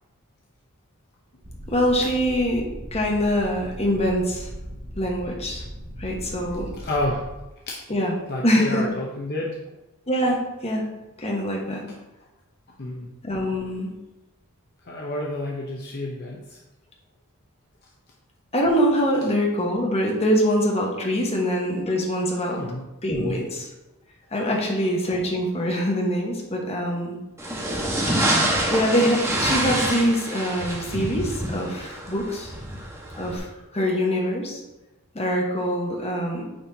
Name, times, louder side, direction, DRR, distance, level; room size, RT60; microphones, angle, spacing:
sound 1, 1.4-7.4, equal, 55° right, 1.9 m, -38 dB
voice 1, 1.7-4.5 5.0-5.6 6.0-6.7 7.9-8.1 8.4-8.9 10.1-10.9 11.2-11.9 13.2-13.9 18.5-22.6 23.0-23.7 24.3-27.2 28.7-32.5 33.2-33.5 33.7-34.6 35.1-36.4, equal, 30° left, -1 dB, 1.2 m, -24 dB
voice 2, 6.8-7.3 7.7-7.8 8.3-9.5 12.8-13.1 14.9-16.6 22.5-22.8, left 1 dB, 50° left, -2 dB, 0.7 m, -29 dB
sound 2, 27.4-33.4, right 1 dB, 15° right, 1.2 m, -26 dB
8.9 x 4.4 x 2.7 m, 1.0 s
head